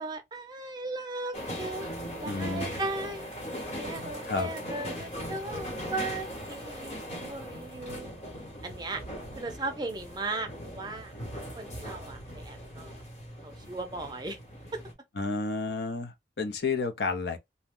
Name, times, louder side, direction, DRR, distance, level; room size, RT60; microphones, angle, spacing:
voice 1, 0.0-1.9 2.2-3.3 3.7-8.1 8.6-9.0 9.4-11.1 11.5-12.9 13.4-14.4 14.7-14.8, right 2 dB, 25° right, 0.5 m, -37 dB
sound 1, 1.3-14.9, equal, 35° left, 1.0 m, -39 dB
voice 2, 2.3-2.7 4.2-4.5 15.2-17.4, left 4 dB, 65° left, 0.6 m, -31 dB
2.7 x 2.1 x 3.6 m
head